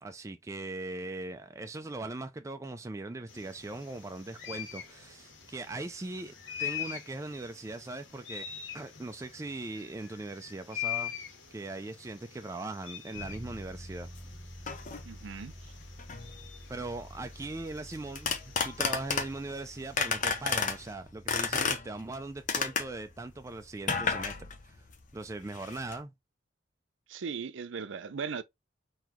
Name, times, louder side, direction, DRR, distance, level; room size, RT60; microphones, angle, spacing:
voice 1, 0.0-6.3 6.6-11.1 11.5-14.1 16.7-18.4 18.6-24.8 25.1-26.1, right 2 dB, 15° right, 0.3 m, -40 dB
sound 1, 3.3-20.9, left 10 dB, 75° left, 1.5 m, -44 dB
sound 2, 13.1-25.0, equal, ahead, 1.5 m, -50 dB
sound 3, 14.1-14.2 14.7-15.0 16.0-16.3 17.9-19.5 20.0-20.8 21.3-22.2 22.5-23.0 23.8-25.2 25.4-26.0, left 5 dB, 45° left, 0.7 m, -31 dB
voice 2, 15.0-15.7 27.1-28.4, right 6 dB, 75° right, 0.5 m, -38 dB
3.9 x 2.8 x 3.0 m
head